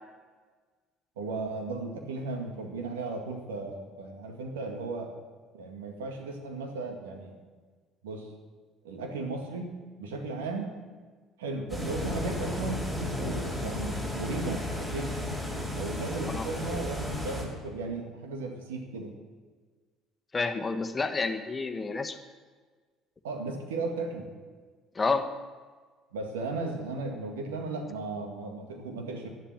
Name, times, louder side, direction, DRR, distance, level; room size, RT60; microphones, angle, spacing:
voice 1, 1.2-5.1 5.5-7.3 8.0-8.3 8.8-9.7 10.0-10.7 11.4-12.8 13.6-15.2 15.8-19.1 23.2-24.3 26.1-29.3, right 3 dB, 80° right, 3 dB, 1.9 m, -35 dB
sound 1, 11.7-17.4, left 1 dB, 15° right, 4.5 m, -33 dB
voice 2, 20.3-22.2 24.9-25.3, left 4 dB, 25° left, 7 dB, 1.3 m, -29 dB
11.5 x 11.0 x 7.5 m, 1.4 s
hypercardioid pair, 60°, 0 cm